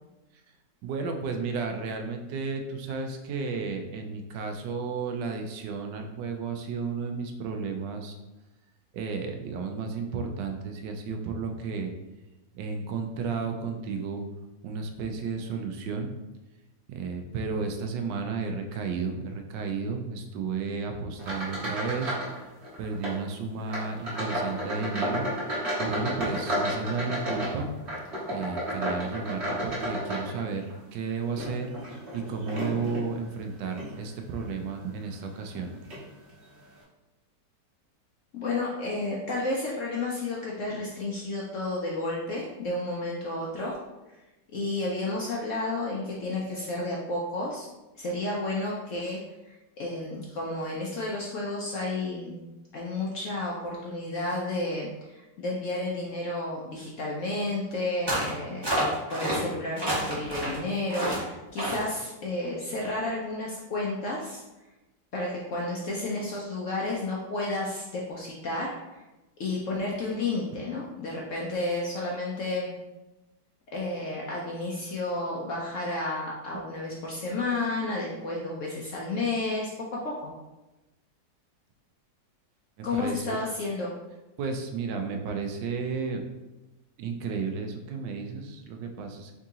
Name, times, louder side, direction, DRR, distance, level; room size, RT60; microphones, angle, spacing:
voice 1, 0.8-8.1 8.9-11.9 12.5-14.2 14.6-16.1 16.9-22.2 22.8-25.3 25.5-27.7 28.3-30.7 30.9-31.7 32.1-35.7 82.9-83.4 84.4-86.2 87.0-89.3, right 5 dB, 85° right, 4 dB, 1.2 m, -33 dB
sound 1, 21.2-22.4 22.6-23.2 23.7-30.7 31.3-33.1 33.7-33.9 34.5-34.6 35.5-35.6 35.9-36.1, equal, 40° right, 1.4 m, -32 dB
voice 2, 38.3-43.8 44.1-44.2 44.5-47.7 48.0-52.4 52.7-64.4 65.1-69.0 69.4-72.7 73.7-79.7 80.0-80.3 82.8-83.9, left 2 dB, 65° left, -3 dB, 0.7 m, -31 dB
sound 2, 58.1-58.3 58.6-59.4 59.8-60.6 60.9-61.2 61.6-61.9, right 1 dB, 20° right, 0.8 m, -28 dB
3.6 x 2.8 x 3.6 m, 1.0 s
omnidirectional pair, 1.9 m